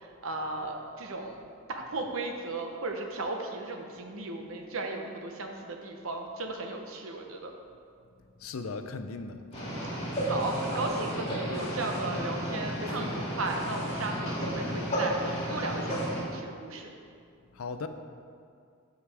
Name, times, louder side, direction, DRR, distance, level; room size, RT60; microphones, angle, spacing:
voice 1, 0.2-1.4 1.7-7.5 10.3-16.9, right 2 dB, 75° right, 3 dB, 0.9 m, -35 dB
voice 2, 8.4-9.4 17.5-17.9, left 4 dB, 75° left, 8 dB, 0.5 m, -37 dB
sound 1, 9.5-16.2, equal, 25° left, 2.1 m, -32 dB
12.0 x 5.0 x 3.4 m, 2.3 s
head